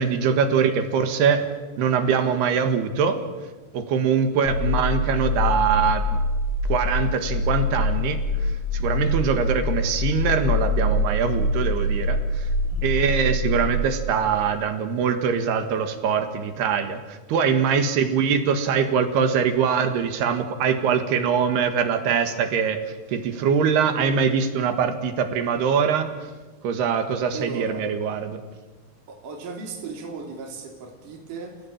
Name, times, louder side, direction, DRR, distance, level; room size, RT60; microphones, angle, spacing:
voice 1, 0.0-3.2 3.7-6.2 6.7-12.5 12.8-22.8 23.1-26.1 26.6-28.4, right 6 dB, 75° right, 8 dB, 3.8 m, -23 dB
sound 1, 4.5-13.8, left 2 dB, 50° left, 5.4 m, -24 dB
voice 2, 27.3-27.9 29.1-31.6, right 4 dB, 55° right, 1 dB, 4.5 m, -36 dB
30.0 x 16.5 x 8.8 m, 1.3 s
omnidirectional pair, 4.7 m